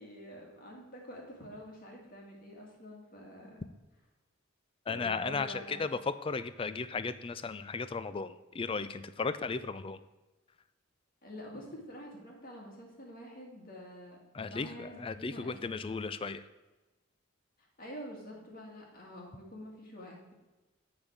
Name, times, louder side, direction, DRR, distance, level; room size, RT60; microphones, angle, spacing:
voice 1, 0.0-3.7 4.9-6.0 11.2-16.0 17.6-20.3, equal, 45° left, -1 dB, 2.1 m, -47 dB
voice 2, 4.9-10.0 14.3-16.5, left 4 dB, 25° left, 13 dB, 0.4 m, -35 dB
9.9 x 4.0 x 6.0 m, 1.1 s
head